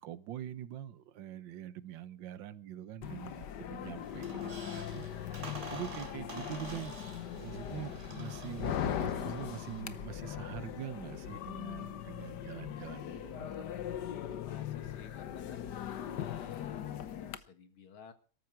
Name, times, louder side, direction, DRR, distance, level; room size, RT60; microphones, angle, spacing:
voice 1, 0.0-7.0 7.3-13.8, right 10 dB, 65° right, 1.6 m, -44 dB
sound 1, 3.0-17.4, left 10 dB, 60° left, 1.4 m, -40 dB
Squeak, 4.0-9.8, right 2 dB, 35° right, 3.0 m, -49 dB
voice 2, 14.4-15.6 16.1-18.1, left 6 dB, 75° left, 2.5 m, -53 dB
18.5 x 13.5 x 4.7 m
omnidirectional pair, 2.4 m